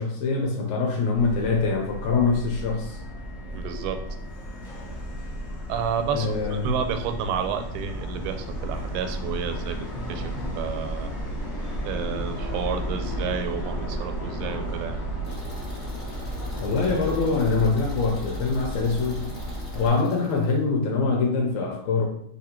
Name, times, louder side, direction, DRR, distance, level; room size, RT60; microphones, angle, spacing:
voice 1, 0.0-3.0 6.1-6.8 16.6-19.3 19.7-22.1, left 4 dB, 75° left, 0 dB, 1.7 m, -24 dB
Subway metro underground, 1.1-19.9, equal, ahead, 0.5 m, -33 dB
voice 2, 3.5-4.0 5.7-9.8 10.1-11.1 11.9-15.0, right 7 dB, 90° right, 7 dB, 2.0 m, -30 dB
sound 1, 15.2-20.6, equal, 60° left, 0.4 m, -43 dB
4.3 x 2.7 x 4.2 m, 0.72 s
omnidirectional pair, 3.3 m